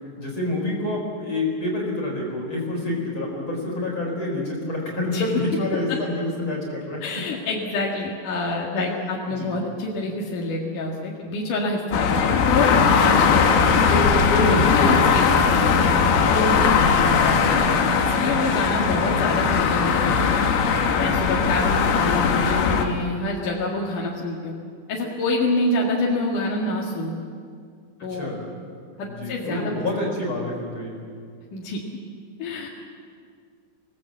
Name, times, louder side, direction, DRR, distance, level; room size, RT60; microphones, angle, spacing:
voice 1, 0.2-7.2 9.0-9.5 14.2-15.0 28.1-28.4 29.1-31.0, left 2 dB, 30° left, -2 dB, 4.7 m, -27 dB
voice 2, 7.0-12.1 12.4-12.7 13.0-15.7 16.3-17.6 18.0-20.4 20.9-24.5 24.9-27.1 28.0-28.3 29.0-29.7 30.0-30.1 31.5-31.8 32.4-32.7, left 2 dB, 55° left, -3 dB, 3.3 m, -27 dB
sound 1, 11.9-22.9, left 5 dB, 85° left, 3.9 m, -19 dB
27.0 x 19.0 x 7.6 m, 2.2 s
omnidirectional pair, 5.1 m